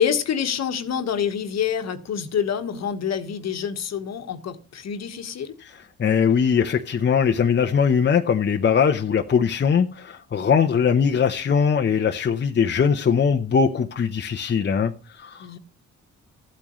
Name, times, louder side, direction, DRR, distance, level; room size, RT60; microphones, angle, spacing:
voice 1, 0.0-5.5 15.4-15.6, left 8 dB, 60° left, 1.4 m, -26 dB
voice 2, 6.0-15.5, left 6 dB, 35° left, 0.8 m, -21 dB
14.5 x 8.6 x 3.1 m
cardioid pair, 90°, 30 cm